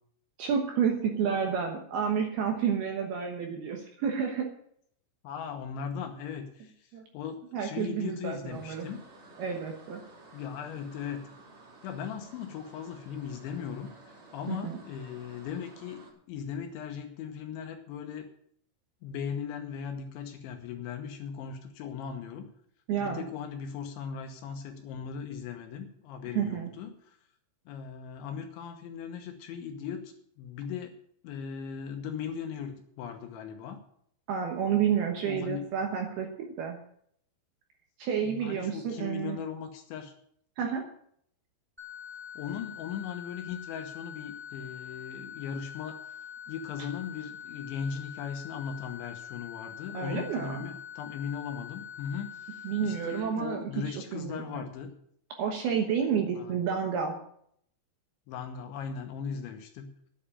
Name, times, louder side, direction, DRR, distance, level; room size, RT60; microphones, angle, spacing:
voice 1, 0.4-4.5 6.9-7.0 7.5-8.9 9.4-10.0 14.5-14.8 22.9-23.2 26.3-26.7 34.3-36.3 36.6-36.8 38.0-39.4 40.6-40.9 49.9-50.6 52.6-53.6 54.1-54.6 55.4-57.2, right 7 dB, 70° right, 3 dB, 2.5 m, -30 dB
voice 2, 5.2-9.0 10.3-11.2 11.8-16.0 16.3-18.3 19.0-22.5 23.0-27.2 27.7-30.9 31.2-33.8 35.2-35.7 38.2-40.1 42.4-54.9 56.4-56.6 58.3-59.9, left 7 dB, 75° left, 5 dB, 3.1 m, -38 dB
sound 1, 8.5-16.1, right 2 dB, 25° right, 4.3 m, -53 dB
sound 2, 41.8-53.2, left 8 dB, ahead, 0.7 m, -44 dB
10.0 x 9.0 x 8.7 m, 0.66 s
omnidirectional pair, 5.9 m